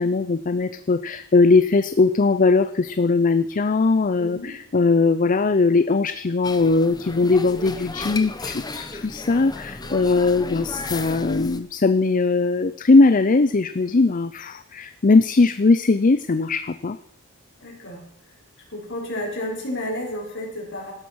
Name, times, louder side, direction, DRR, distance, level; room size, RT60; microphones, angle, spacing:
voice 1, 0.0-17.0, left 3 dB, 40° left, 12 dB, 0.5 m, -19 dB
voice 2, 4.2-4.5 9.8-10.1 17.6-18.0 18.7-20.9, left 1 dB, 55° left, 0 dB, 5.7 m, -31 dB
sound 1, 6.4-11.6, left 3 dB, 20° left, 1.1 m, -34 dB
16.0 x 13.0 x 6.3 m, 0.77 s
head